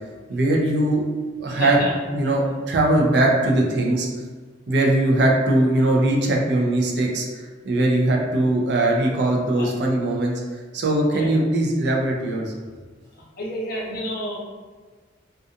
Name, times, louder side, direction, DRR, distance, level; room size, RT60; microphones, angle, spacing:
voice 1, 0.3-1.0 1.4-1.8 2.1-4.1 4.7-12.5, right 1 dB, 60° right, -1 dB, 0.4 m, -20 dB
voice 2, 1.5-1.9 9.5-9.7 11.1-11.4 13.1-14.4, left 1 dB, 50° left, -4 dB, 0.6 m, -30 dB
2.4 x 2.3 x 2.7 m, 1.4 s
head